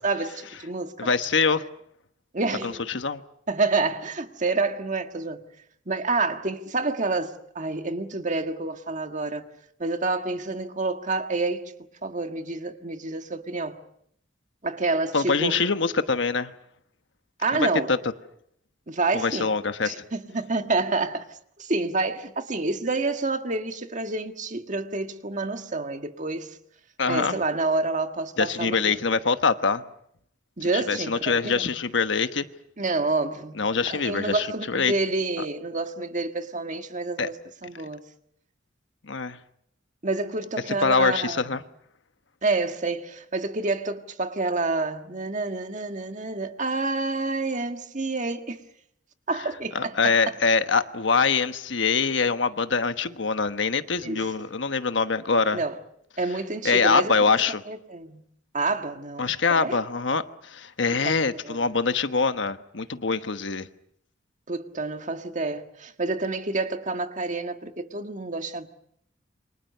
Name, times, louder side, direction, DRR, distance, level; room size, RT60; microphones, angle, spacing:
voice 1, 0.0-1.1 2.3-2.9 3.5-5.4 5.9-9.5 9.8-11.7 12.0-13.8 14.6-15.6 17.4-17.9 18.9-19.5 19.8-21.2 21.6-26.6 27.1-29.0 30.6-31.7 32.8-37.4 37.6-38.0 40.0-41.6 42.4-48.6 49.3-50.1 54.0-54.3 55.5-55.8 56.2-57.4 57.7-58.2 58.5-59.8 61.0-61.2 61.4-61.6 64.5-68.7, right 3 dB, 40° right, 1.7 m, -28 dB
voice 2, 1.0-1.6 2.6-3.2 15.1-16.5 17.9-18.0 19.1-19.9 27.0-27.4 28.4-29.8 30.7-32.5 33.6-34.9 35.4-35.5 37.2-37.3 39.0-39.4 40.8-41.6 49.7-55.6 56.6-57.6 59.2-63.7, left 4 dB, 75° left, 1.2 m, -24 dB
28.0 x 25.0 x 6.7 m
head